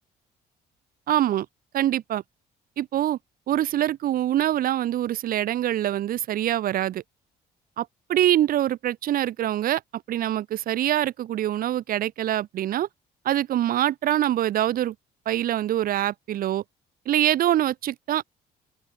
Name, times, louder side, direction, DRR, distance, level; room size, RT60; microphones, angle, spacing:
voice 1, 1.1-1.5 1.7-2.2 2.8-3.2 3.5-7.0 7.8-12.9 13.2-14.9 15.3-16.6 17.1-18.2, right 12 dB, 60° right, 1.0 m, -24 dB
open air
cardioid pair, 110°, 17 cm